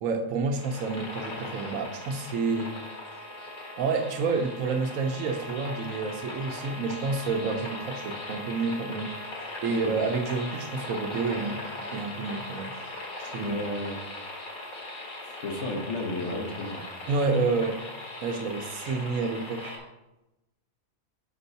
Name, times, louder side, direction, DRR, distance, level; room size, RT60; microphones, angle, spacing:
voice 1, 0.0-2.7 3.8-9.1 9.6-11.6 11.9-12.7 13.2-13.6 17.1-17.8 18.2-19.8, right 4 dB, 70° right, 5 dB, 1.1 m, -29 dB
sound 1, 0.6-19.8, left 1 dB, 90° left, 1.9 m, -39 dB
voice 2, 13.4-14.0 15.4-16.8, left 2 dB, 55° left, 1 dB, 1.3 m, -33 dB
8.1 x 4.5 x 4.0 m, 0.97 s
omnidirectional pair, 1.5 m